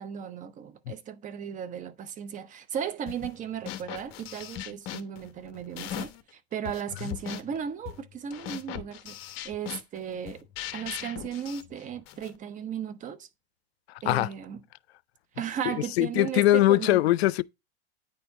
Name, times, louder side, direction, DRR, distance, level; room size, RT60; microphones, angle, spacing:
voice 1, 0.0-10.5 10.7-13.3 14.0-14.6 15.4-17.0, right 8 dB, 25° right, 0.7 m, -36 dB
sound 1, 3.1-3.4 3.7-6.3 6.6-12.4, left 12 dB, 40° left, 1.0 m, -39 dB
voice 2, 15.7-17.4, left 16 dB, 85° left, 0.5 m, -22 dB
9.1 x 4.4 x 4.7 m
supercardioid pair, 130°, 31 cm